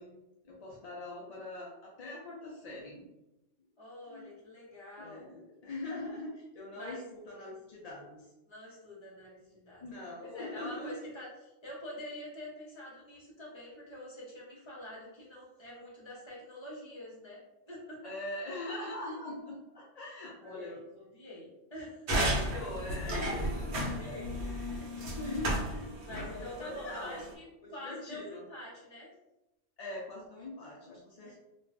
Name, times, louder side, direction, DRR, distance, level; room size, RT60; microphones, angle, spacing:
voice 1, 0.0-3.0 4.1-4.3 5.0-8.3 9.8-10.9 18.0-20.8 22.3-25.9 26.2-27.3 27.6-28.4 29.8-31.4, left 2 dB, 60° left, -4 dB, 0.4 m, -42 dB
voice 2, 3.8-5.3 6.7-7.0 8.5-9.8 10.2-18.1 20.4-22.5 23.8-24.4 24.8-25.1 26.0-29.1 31.2-31.3, left 1 dB, 25° left, -5 dB, 0.8 m, -46 dB
sound 1, 22.1-27.3, right 1 dB, 60° right, 1.0 m, -34 dB
2.4 x 2.4 x 3.3 m, 0.96 s
omnidirectional pair, 1.3 m